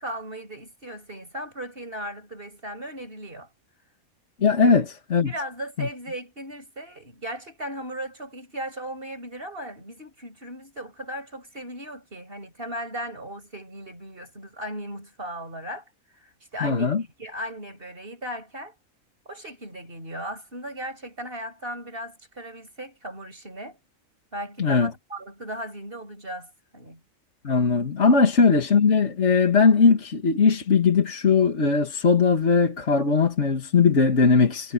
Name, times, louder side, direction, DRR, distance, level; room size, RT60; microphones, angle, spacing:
voice 1, 0.0-3.5 4.6-4.7 5.2-18.8 19.3-23.8 24.3-27.0 28.2-28.3, equal, 45° right, 7.6 m, -37 dB
voice 2, 4.4-5.3 5.8-5.9 16.6-17.0 24.6-24.9 27.4-34.7, left 5 dB, 60° left, 2.2 m, -19 dB
omnidirectional pair, 1.4 m